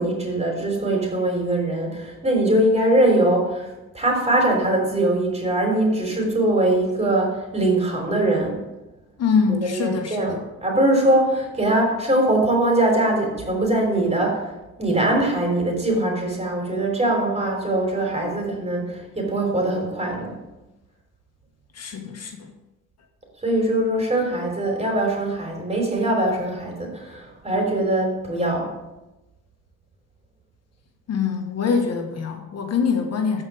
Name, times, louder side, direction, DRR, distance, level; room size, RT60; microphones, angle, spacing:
voice 1, 0.0-8.6 9.5-14.5 14.8-20.4 23.4-28.7, right 1 dB, 20° right, 0 dB, 3.5 m, -22 dB
voice 2, 9.2-10.4 21.7-22.5 31.1-33.4, left 6 dB, 55° left, 3 dB, 1.5 m, -24 dB
14.0 x 5.0 x 4.9 m, 1.0 s
cardioid pair, 90°, 30 cm